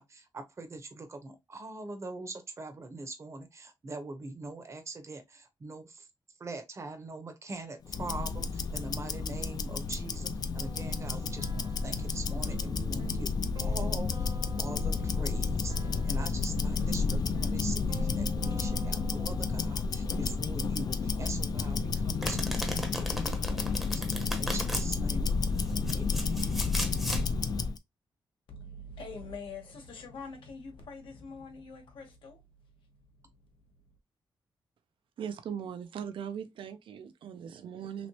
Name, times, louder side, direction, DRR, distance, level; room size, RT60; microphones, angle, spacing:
voice 1, 0.0-6.1 6.4-24.0 24.4-25.6 25.9-26.4, right 3 dB, 35° right, 0.7 m, -43 dB
Tick-tock, 7.8-27.8, left 4 dB, 50° left, 0.4 m, -31 dB
sound 1, 10.5-19.7, right 3 dB, 60° right, 1.0 m, -48 dB
Domestic sounds home sounds, 22.2-24.8 25.6-27.2, equal, ahead, 0.7 m, -36 dB
voice 2, 28.5-32.4 32.8-33.6, left 3 dB, 85° left, 1.0 m, -45 dB
voice 3, 35.2-38.1, right 8 dB, 85° right, 0.5 m, -39 dB
3.0 x 3.0 x 2.8 m
wide cardioid pair, 140°, 9 cm